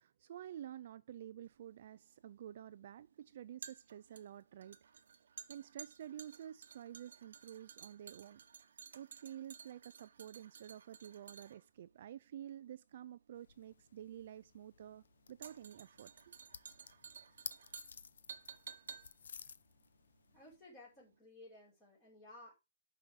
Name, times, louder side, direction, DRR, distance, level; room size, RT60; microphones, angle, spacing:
voice 1, 0.0-4.8 5.5-8.4 8.9-16.4, right 10 dB, 45° right, 0.4 m, -50 dB
sound 1, 1.5-20.7 21.0-21.1, right 6 dB, 75° right, 1.0 m, -55 dB
sound 2, 13.3-20.6, left 6 dB, 80° left, 0.7 m, -55 dB
voice 2, 20.3-22.5, left 2 dB, 15° left, 5.3 m, -57 dB
12.0 x 5.5 x 3.6 m
hypercardioid pair, 175°, 0 cm